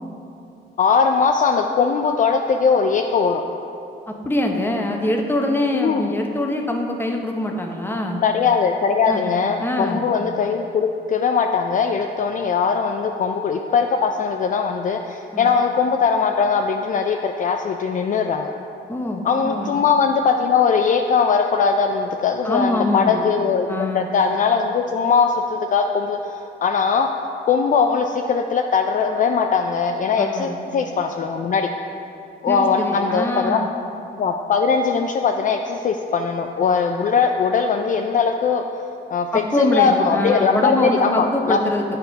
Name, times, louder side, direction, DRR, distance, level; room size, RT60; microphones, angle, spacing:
voice 1, 0.8-3.4 5.7-6.1 8.2-18.5 19.2-27.1 27.5-31.7 32.4-33.6 34.2-38.6 39.1-39.3 39.6-41.6, left 5 dB, 40° left, 4 dB, 0.4 m, -20 dB
voice 2, 4.1-8.2 9.1-9.2 9.6-10.0 15.3-15.5 18.9-19.8 22.4-23.2 23.7-24.1 30.2-30.6 32.5-33.7 39.3-41.8, left 1 dB, 10° left, 2 dB, 0.9 m, -24 dB
8.9 x 4.3 x 5.2 m, 2.7 s
cardioid pair, 90°, 20 cm